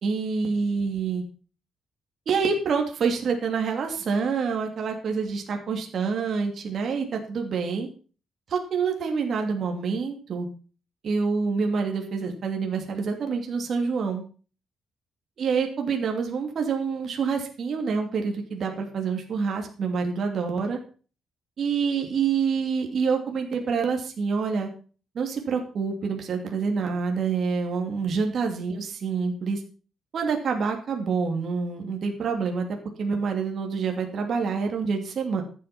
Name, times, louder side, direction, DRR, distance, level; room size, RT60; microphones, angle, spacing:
voice 1, 0.0-1.2 2.3-7.9 8.5-10.5 11.0-14.2 15.4-20.8 21.6-24.7 25.1-29.6 30.1-35.4, right 5 dB, 45° right, 3 dB, 2.7 m, -27 dB
13.5 x 8.3 x 5.9 m, 0.39 s
cardioid pair, 160°, 0 cm